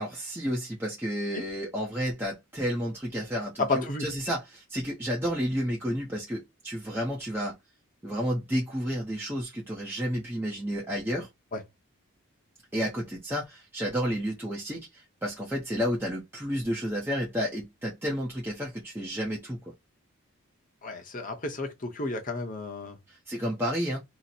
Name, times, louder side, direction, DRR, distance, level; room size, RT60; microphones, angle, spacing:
voice 1, 0.0-7.6 8.0-11.3 12.7-19.7 23.1-24.0, equal, 10° right, 0.5 m, -31 dB
voice 2, 3.6-4.0 11.5-11.6 20.8-23.0, left 3 dB, 35° left, 0.8 m, -31 dB
2.8 x 2.1 x 3.9 m
head